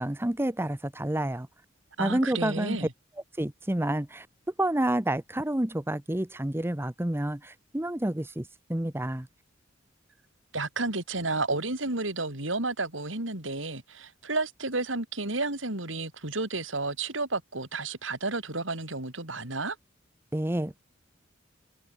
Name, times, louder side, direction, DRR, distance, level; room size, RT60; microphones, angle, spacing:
voice 1, 0.0-1.5 2.0-2.9 3.4-4.3 4.6-9.3 20.3-20.8, right 1 dB, 10° right, 0.9 m, -29 dB
voice 2, 2.0-2.9 10.5-19.8, right 3 dB, 85° right, 5.6 m, -31 dB
head